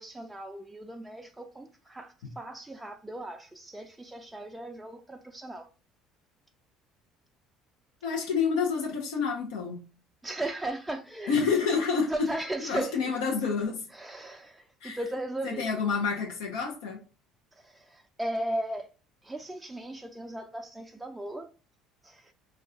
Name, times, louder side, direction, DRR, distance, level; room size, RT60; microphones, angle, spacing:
voice 1, 0.0-5.7 10.2-11.5 12.1-13.1 13.9-15.6 17.5-18.9 19.2-21.5 22.0-22.3, right 1 dB, 10° right, 0.3 m, -37 dB
voice 2, 8.0-9.8 11.3-12.1 12.7-13.9 14.8-15.0 15.4-17.0, left 5 dB, 80° left, 0.6 m, -28 dB
2.3 x 2.2 x 3.6 m
supercardioid pair, 80°, 0 cm